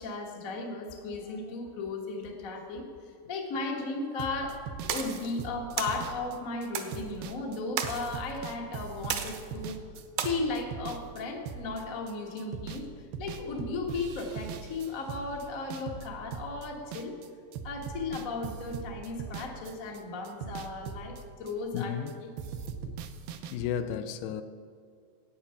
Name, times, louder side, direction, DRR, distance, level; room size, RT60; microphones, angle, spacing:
voice 1, 0.0-4.6 4.8-9.8 10.2-12.9 13.2-17.1 17.6-22.3, left 3 dB, 55° left, 0 dB, 0.9 m, -35 dB
sound 1, 4.2-12.1 12.4-12.9 13.1-17.3 17.5-20.0 20.3-22.1 22.4-23.6, right 7 dB, 90° right, 2.5 m, -41 dB
sound 2, 4.9-5.3 5.8-6.0 6.7-7.0 7.8-8.2 9.1-9.6 10.2-10.3, right 8 dB, 70° right, 1.9 m, -33 dB
voice 2, 21.7-22.1 22.9-23.0 23.5-24.4, left 9 dB, 80° left, 10 dB, 2.2 m, -33 dB
9.6 x 8.7 x 6.8 m, 2.2 s
omnidirectional pair, 4.1 m